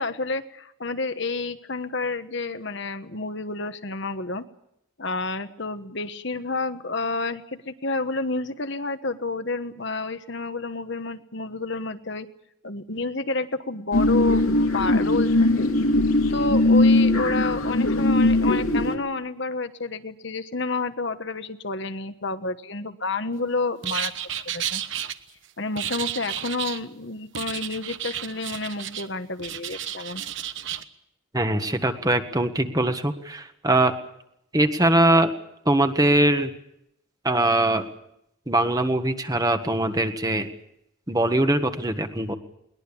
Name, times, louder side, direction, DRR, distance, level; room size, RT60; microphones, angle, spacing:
voice 1, 0.0-4.5 5.0-12.3 12.6-14.4 14.7-15.7 16.3-24.1 24.4-24.8 25.6-30.2, left 3 dB, 55° left, 9 dB, 1.3 m, -30 dB
sound 1, 13.9-19.0, left 2 dB, 85° left, 2.9 m, -20 dB
sound 2, 23.8-25.1 25.8-26.8 27.3-29.1 29.4-30.8, right 10 dB, 60° right, 1.2 m, -32 dB
voice 2, 31.3-33.9 34.5-35.3 35.6-36.5 37.2-37.8 38.5-40.5 41.1-42.4, right 1 dB, 15° right, 7 dB, 1.5 m, -22 dB
22.0 x 20.0 x 8.6 m, 0.78 s
head